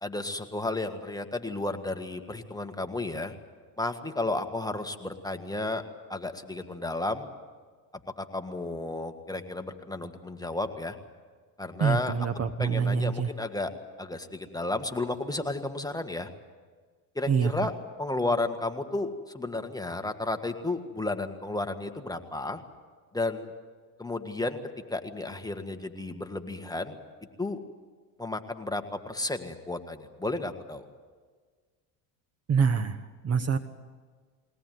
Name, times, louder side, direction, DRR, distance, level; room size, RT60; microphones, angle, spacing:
voice 1, 0.0-3.3 3.8-5.8 6.1-7.3 8.2-11.0 11.6-12.1 12.6-13.7 14.0-16.3 17.1-17.7 18.0-22.6 23.1-23.5 24.0-24.6 24.9-27.0 27.4-27.6 28.2-30.8, left 2 dB, 10° left, 5 dB, 1.7 m, -32 dB
voice 2, 11.8-13.3 17.3-17.5 32.5-33.6, right 6 dB, 35° right, 12 dB, 1.1 m, -26 dB
22.0 x 18.0 x 9.3 m, 1.5 s
supercardioid pair, 90°, 43 cm